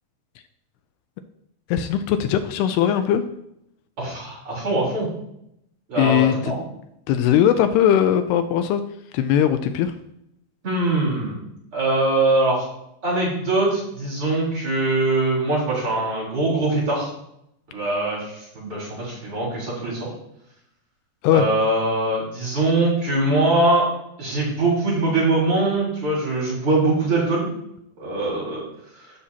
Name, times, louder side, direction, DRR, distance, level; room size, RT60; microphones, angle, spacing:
voice 1, 1.7-3.2 6.0-6.5 7.1-8.8 9.1-9.9 21.2-21.4, left 10 dB, 85° left, 9 dB, 2.4 m, -19 dB
voice 2, 4.0-5.1 5.9-6.6 10.6-11.4 11.7-12.7 13.0-17.1 17.7-20.1 21.3-23.9 24.2-27.5 28.0-28.6 29.0-29.1, right 2 dB, 30° right, -6 dB, 4.2 m, -22 dB
14.5 x 5.9 x 2.8 m, 0.77 s
omnidirectional pair, 5.0 m